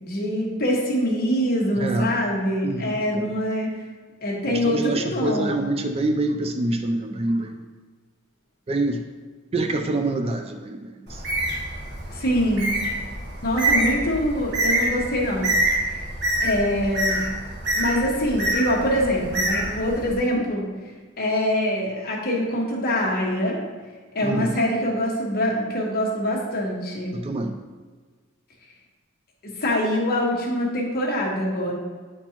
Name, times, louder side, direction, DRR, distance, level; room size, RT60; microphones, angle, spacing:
voice 1, 0.0-3.7 4.2-5.6 12.1-12.7 13.4-15.5 16.4-17.2 17.7-20.7 21.2-23.6 24.1-27.1 29.4-31.7, equal, 45° left, -2 dB, 1.2 m, -24 dB
voice 2, 1.8-2.2 2.6-3.2 4.5-7.6 8.7-9.0 9.5-11.2 24.2-24.6 27.1-27.5, right 2 dB, 25° right, 5 dB, 0.3 m, -26 dB
Bird, 11.1-20.1, right 1 dB, 50° right, 1.4 m, -26 dB
8.6 x 4.3 x 2.9 m, 1.4 s
head